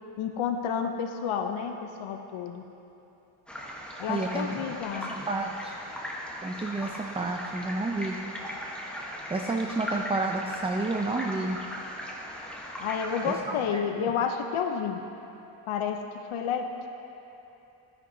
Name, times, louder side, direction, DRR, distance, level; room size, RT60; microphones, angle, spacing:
voice 1, 0.2-2.6 4.0-5.1 12.8-15.0 15.7-16.9, left 7 dB, 90° left, 5 dB, 0.7 m, -30 dB
sound 1, 3.5-13.3, equal, ahead, 1.0 m, -38 dB
voice 2, 4.1-4.5 4.9-5.8 6.4-8.2 9.3-11.6 13.2-14.1, right 2 dB, 15° right, 1 dB, 0.3 m, -31 dB
12.0 x 10.5 x 2.7 m, 3.0 s
wide cardioid pair, 120°, 47 cm